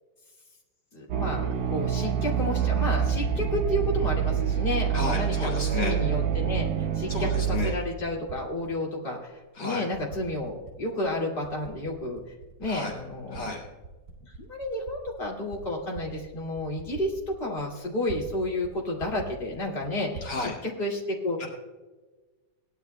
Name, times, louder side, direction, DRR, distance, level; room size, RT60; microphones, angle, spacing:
voice 1, 0.9-1.4 1.7-6.7 6.9-12.2 12.6-13.5 14.2-21.4, left 1 dB, 30° left, -2 dB, 2.6 m, -31 dB
sound 1, 1.1-7.7, right 8 dB, 65° right, 1.0 m, -26 dB
Typing, 3.5-3.9 4.5-5.1 5.4-5.9 6.1-7.2 7.5-8.7 9.3-9.4 9.9-10.8 11.1-13.4 13.8-18.4 18.6-18.7 19.0-20.3, right 4 dB, 40° right, 3.3 m, -43 dB
voice 2, 4.9-6.0 7.1-7.8 9.6-9.9 12.6-12.9 13.3-13.6 20.2-20.6 21.4-21.5, left 3 dB, 75° left, -2 dB, 2.8 m, -32 dB
19.0 x 11.0 x 2.3 m, 1.2 s
omnidirectional pair, 2.0 m